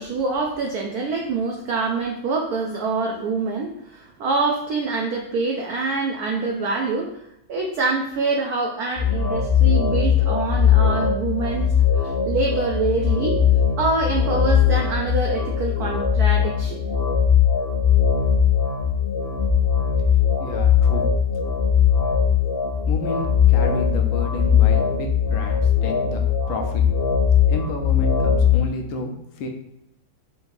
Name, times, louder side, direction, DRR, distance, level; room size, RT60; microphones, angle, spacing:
voice 1, 0.0-11.7 11.9-13.4 13.8-16.8, right 3 dB, 80° right, 1 dB, 0.8 m, -25 dB
sound 1, 9.0-28.6, left 7 dB, 50° left, 1.0 m, -20 dB
voice 2, 20.4-21.1 22.9-26.8 27.5-29.5, left 3 dB, 85° left, 3 dB, 1.5 m, -31 dB
4.5 x 2.6 x 3.8 m, 0.82 s
omnidirectional pair, 2.2 m